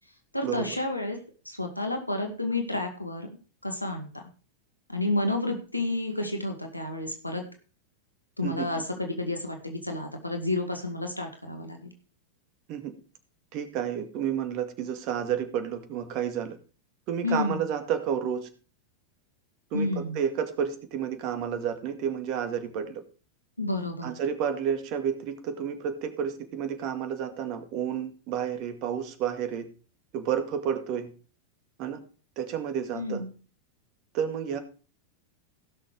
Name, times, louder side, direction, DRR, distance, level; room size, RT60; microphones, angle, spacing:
voice 1, 0.3-1.2 1.5-3.3 3.6-4.3 4.9-7.4 8.4-11.8 17.2-17.6 19.7-20.2 23.6-24.1 32.9-33.3, left 2 dB, 85° left, 4 dB, 1.9 m, -30 dB
voice 2, 13.5-16.6 17.1-18.5 19.7-23.0 24.0-29.7 30.1-31.1 31.8-32.0 32.4-33.2 34.1-34.6, right 8 dB, 40° right, 8 dB, 2.1 m, -30 dB
16.5 x 6.5 x 4.8 m, 0.37 s
figure-of-eight pair, 90°, 0 cm